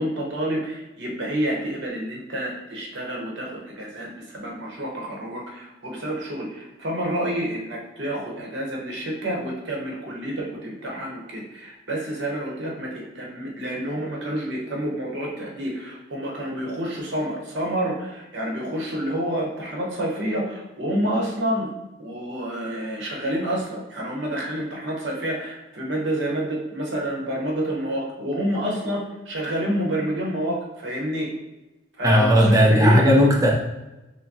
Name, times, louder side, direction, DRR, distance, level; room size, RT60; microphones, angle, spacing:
voice 1, 0.0-21.7 22.0-31.3 32.0-33.0, equal, 55° right, -2 dB, 0.9 m, -28 dB
voice 2, 32.0-33.5, equal, 15° right, -1 dB, 0.5 m, -16 dB
5.9 x 2.2 x 2.7 m, 1.0 s
head